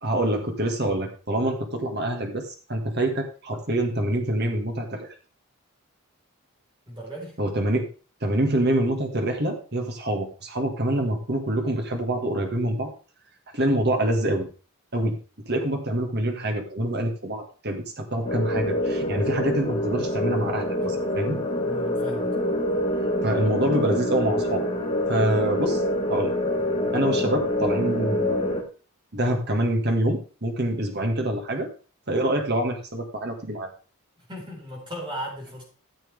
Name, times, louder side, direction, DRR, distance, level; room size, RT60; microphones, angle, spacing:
voice 1, 0.0-5.1 7.4-7.9 8.2-12.9 13.5-14.5 14.9-15.2 15.5-21.4 23.2-24.7 25.1-25.8 26.1-26.3 26.9-28.4 29.1-31.7 32.1-33.7, right 1 dB, 45° right, 3 dB, 2.0 m, -26 dB
voice 2, 6.9-7.3 21.6-22.3 34.3-35.6, equal, 20° right, -2 dB, 4.6 m, -36 dB
sound 1, 18.2-28.6, left 1 dB, 25° left, 2.0 m, -26 dB
14.0 x 7.5 x 3.5 m, 0.35 s
head